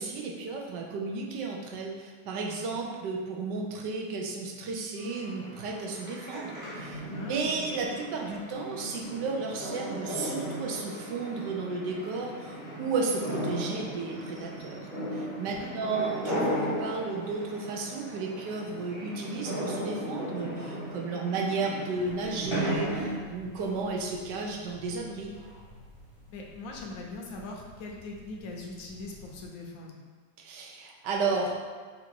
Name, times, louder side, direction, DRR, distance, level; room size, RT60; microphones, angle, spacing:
voice 1, 0.0-7.0 7.3-14.8 15.1-25.3 30.4-31.6, right 4 dB, 85° right, 0 dB, 1.3 m, -33 dB
sound 1, 5.0-23.2, equal, 25° left, 0.7 m, -36 dB
voice 2, 7.1-7.7 15.6-15.9 26.3-29.9, left 2 dB, 65° left, 0 dB, 0.9 m, -41 dB
sound 2, 21.9-29.5, equal, 55° right, 1.1 m, -52 dB
3.9 x 2.5 x 4.4 m, 1.5 s
omnidirectional pair, 1.8 m